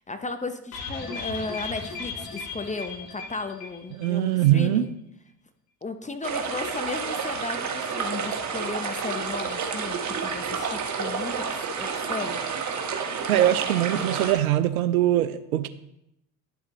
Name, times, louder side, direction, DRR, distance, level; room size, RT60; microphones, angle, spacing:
voice 1, 0.1-4.9 5.8-12.4, left 3 dB, 15° left, 0.8 m, -35 dB
sound 1, 0.7-4.2 4.4-4.5 4.8-4.9, left 4 dB, 60° left, 2.2 m, -36 dB
voice 2, 4.0-4.8 13.3-15.7, right 13 dB, 80° right, 0.6 m, -22 dB
sound 2, 6.2-14.3, right 5 dB, 40° right, 1.5 m, -30 dB
11.0 x 7.4 x 3.1 m
hypercardioid pair, 60°, 42 cm